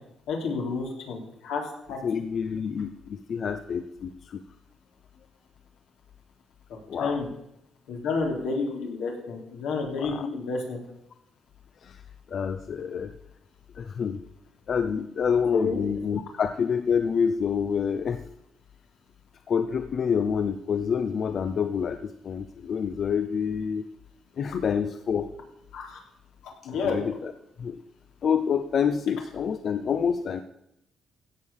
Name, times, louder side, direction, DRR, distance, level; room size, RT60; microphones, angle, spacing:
voice 1, 0.3-1.6 1.9-2.0 7.0-7.3 7.9-10.8 15.5-15.8 25.7-26.0 26.4-27.0, left 4 dB, 90° left, 0 dB, 3.5 m, -30 dB
voice 2, 2.0-4.4 6.9-7.2 10.0-10.3 11.8-12.0 12.3-13.1 13.8-14.2 14.7-18.2 19.5-23.9 24.4-25.3 26.8-27.3 27.6-27.8 28.2-30.4, left 7 dB, 55° left, 9 dB, 0.7 m, -27 dB
16.0 x 6.5 x 7.2 m, 0.81 s
cardioid pair, 90°, 0 cm